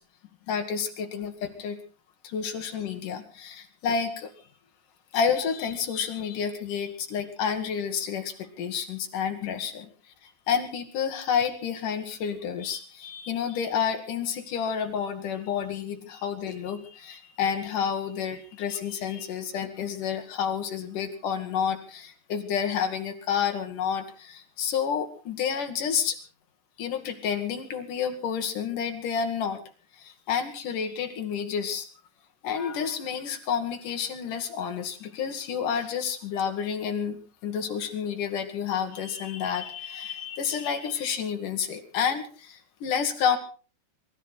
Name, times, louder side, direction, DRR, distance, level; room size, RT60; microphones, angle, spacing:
voice 1, 0.5-1.8 2.2-4.3 5.1-9.9 10.2-26.2 26.8-29.6 30.0-31.9 32.4-43.4, left 7 dB, 55° left, 6 dB, 2.9 m, -30 dB
24.5 x 13.5 x 4.3 m, 0.38 s
omnidirectional pair, 5.1 m